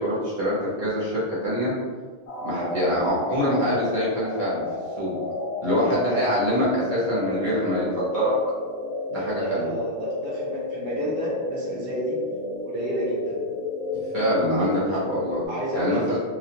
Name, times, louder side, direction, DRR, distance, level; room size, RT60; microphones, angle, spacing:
voice 1, 0.0-1.7 2.4-4.6 5.0-5.1 5.6-8.3 9.1-9.7 14.1-15.4 15.7-16.2, equal, 50° right, -8 dB, 0.9 m, -24 dB
sound 1, 2.3-15.5, left 2 dB, 85° left, 0.9 m, -32 dB
voice 2, 9.4-12.1 12.6-13.4 15.5-16.2, equal, 25° right, -8 dB, 0.7 m, -29 dB
2.2 x 2.2 x 2.7 m, 1.5 s
omnidirectional pair, 1.1 m